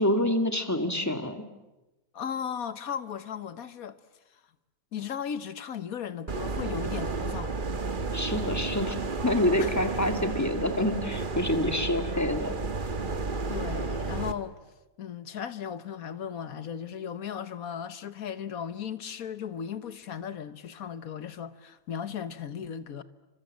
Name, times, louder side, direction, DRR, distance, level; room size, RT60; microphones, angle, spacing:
voice 1, 0.0-1.4 8.1-12.5, left 1 dB, 10° left, 2.1 m, -27 dB
voice 2, 2.1-4.0 4.9-7.5 9.6-9.7 13.5-14.6 15.0-23.0, left 8 dB, 90° left, 1.6 m, -36 dB
sound 1, 6.3-14.3, right 3 dB, 40° right, 1.4 m, -32 dB
29.0 x 25.0 x 7.5 m
omnidirectional pair, 1.5 m